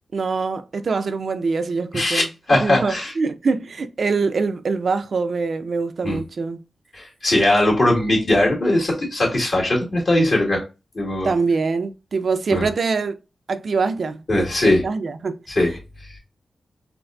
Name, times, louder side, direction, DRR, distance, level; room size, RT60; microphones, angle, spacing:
voice 1, 0.1-2.3 2.6-6.6 11.2-13.2 13.5-15.4, right 4 dB, 70° right, 0.4 m, -24 dB
voice 2, 2.5-3.1 6.0-6.2 6.9-10.6 10.9-11.3 12.5-12.7 14.3-14.8 15.5-15.8, left 1 dB, 65° left, 1.8 m, -19 dB
3.9 x 2.5 x 2.2 m
cardioid pair, 45°, 0 cm